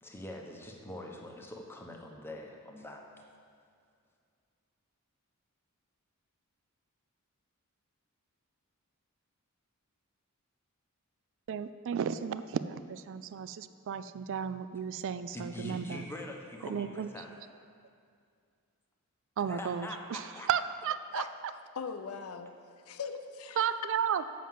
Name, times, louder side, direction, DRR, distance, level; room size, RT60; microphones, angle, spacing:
voice 1, 0.0-3.0 15.3-17.3 19.5-20.5, left 1 dB, 10° left, 1 dB, 0.8 m, -43 dB
voice 2, 11.5-16.1 16.6-17.1 19.4-21.3 23.6-24.2, right 7 dB, 60° right, 13 dB, 0.3 m, -34 dB
voice 3, 21.1-22.5 22.9-23.6, left 5 dB, 75° left, 8 dB, 0.6 m, -40 dB
7.3 x 5.9 x 7.5 m, 2.3 s
head